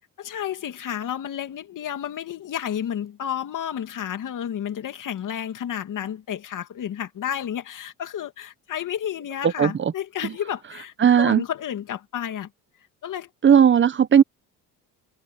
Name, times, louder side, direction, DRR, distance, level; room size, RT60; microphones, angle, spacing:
voice 1, 0.2-12.5 13.0-13.3, left 10 dB, 55° left, 2.5 m, -31 dB
voice 2, 9.6-9.9 11.0-11.4 13.4-14.2, right 8 dB, 30° right, 0.8 m, -16 dB
cardioid pair, 90°, 38 cm